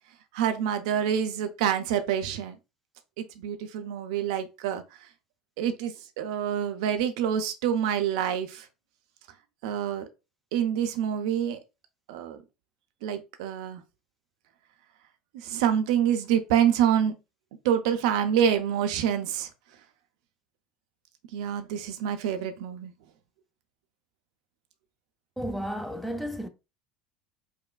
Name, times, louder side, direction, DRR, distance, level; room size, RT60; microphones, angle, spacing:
voice 1, 0.3-2.6 3.2-4.8 5.6-8.6 9.6-10.1 10.5-11.6 12.1-12.4 13.0-13.8 15.4-17.1 17.6-19.5 21.3-22.9, right 9 dB, 65° right, 0.4 m, -26 dB
voice 2, 25.4-26.5, equal, ahead, 0.5 m, -32 dB
4.9 x 2.2 x 2.3 m
figure-of-eight pair, 70°, 4 cm